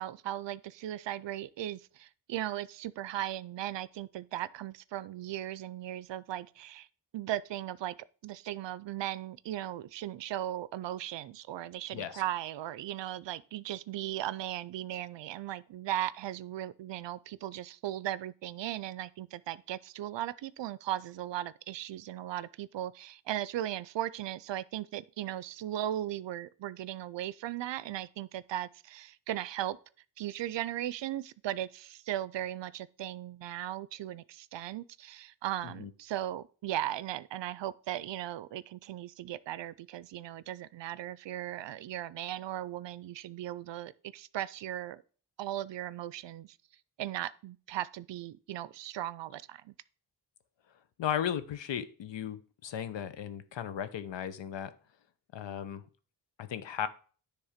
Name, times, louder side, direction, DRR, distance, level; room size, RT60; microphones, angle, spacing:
voice 1, 0.0-6.9 7.1-7.9 8.2-29.8 30.2-45.0 45.4-46.6 47.0-49.7, right 13 dB, 75° right, 0.5 m, -37 dB
voice 2, 51.0-54.7 55.3-55.8 56.4-56.9, left 9 dB, 80° left, 0.8 m, -36 dB
9.9 x 3.5 x 5.0 m
cardioid pair, 75°, 44 cm